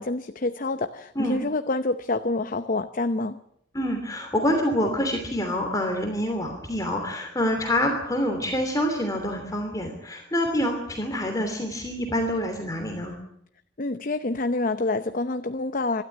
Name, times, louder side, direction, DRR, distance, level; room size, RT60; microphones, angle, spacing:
voice 1, 0.0-3.4 13.8-16.0, left 2 dB, 50° left, 10 dB, 0.8 m, -27 dB
voice 2, 3.7-13.1, left 1 dB, 20° left, 3 dB, 3.0 m, -26 dB
26.0 x 13.0 x 9.2 m, 0.74 s
head